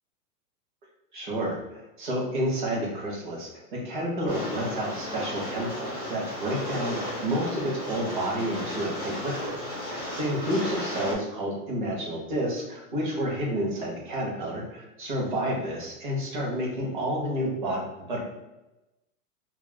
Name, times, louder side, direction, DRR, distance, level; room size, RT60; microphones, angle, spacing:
voice 1, 1.1-17.8 18.1-18.2, equal, 35° right, -2 dB, 0.6 m, -30 dB
Rain, 4.3-11.1, left 1 dB, 30° left, 0.3 m, -35 dB
2.2 x 2.0 x 3.1 m, 0.97 s
hypercardioid pair, 165°, 47 cm